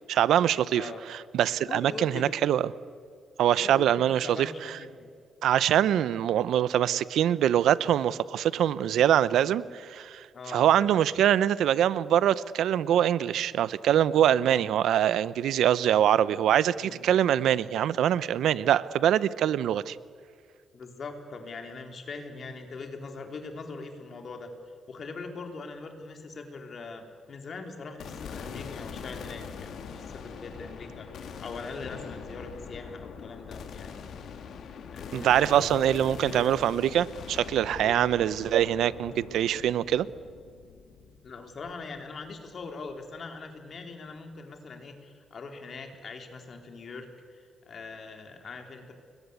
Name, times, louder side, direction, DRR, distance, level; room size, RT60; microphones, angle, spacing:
voice 1, 0.1-2.7 3.4-4.8 5.4-20.0 35.1-40.1, right 10 dB, 75° right, 17 dB, 0.7 m, -24 dB
voice 2, 0.7-1.0 1.7-2.3 3.6-4.9 10.3-10.7 14.4-14.7 16.8-17.0 20.7-24.5 24.9-34.1 34.9-36.5 37.8-38.1 41.2-48.9, left 4 dB, 45° left, 5 dB, 3.8 m, -41 dB
sound 1, 28.0-42.3, left 6 dB, 65° left, 2.8 m, -43 dB
29.5 x 22.0 x 8.4 m, 2.1 s
cardioid pair, 125°, 0 cm